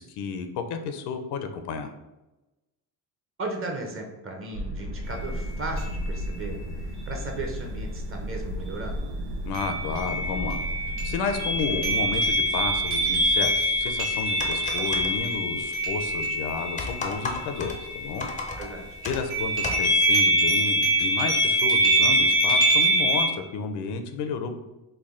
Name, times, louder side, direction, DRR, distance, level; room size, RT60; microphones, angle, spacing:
voice 1, 0.0-1.9 9.4-10.6 11.0-18.3 19.1-24.5, left 5 dB, 80° left, 7 dB, 0.6 m, -32 dB
voice 2, 3.4-9.1 18.6-19.0, right 2 dB, 35° right, 2 dB, 0.7 m, -36 dB
sound 1, 4.5-14.5, equal, 70° right, 1.2 m, -35 dB
sound 2, 5.1-5.2 5.8-6.4 9.5-18.7 19.0-23.3, right 1 dB, 90° right, 1.4 m, -24 dB
sound 3, 13.9-19.8, left 3 dB, 20° left, 0.4 m, -37 dB
3.4 x 2.2 x 3.6 m, 1.0 s
cardioid pair, 115°, 39 cm